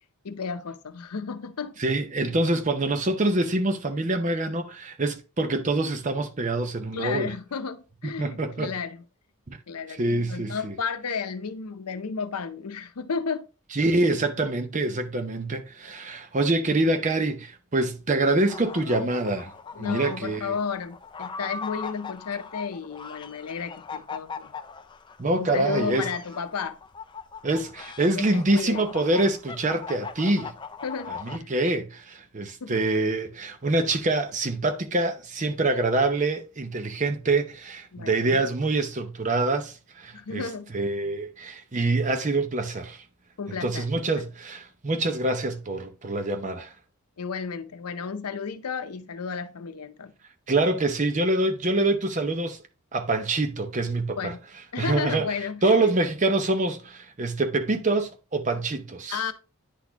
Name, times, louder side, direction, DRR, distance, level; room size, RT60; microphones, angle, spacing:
voice 1, 0.2-1.8 6.9-9.0 9.7-13.5 19.7-24.5 25.3-26.8 28.2-28.8 30.8-31.5 32.6-32.8 37.9-38.4 40.1-40.7 43.4-44.1 47.2-50.1 54.2-54.4 54.7-55.9 59.1-59.3, left 5 dB, 90° left, 0.6 m, -33 dB
voice 2, 1.8-7.3 8.2-8.7 9.5-9.6 10.0-10.8 13.7-19.5 19.8-20.5 25.2-26.1 27.4-30.5 31.2-40.4 40.7-43.0 43.6-46.7 50.5-52.6 52.9-54.3 54.8-55.3 55.6-59.2, right 2 dB, 35° right, 0.6 m, -25 dB
sound 1, 18.5-31.4, left 5 dB, 20° left, 0.3 m, -40 dB
9.9 x 4.1 x 2.8 m
head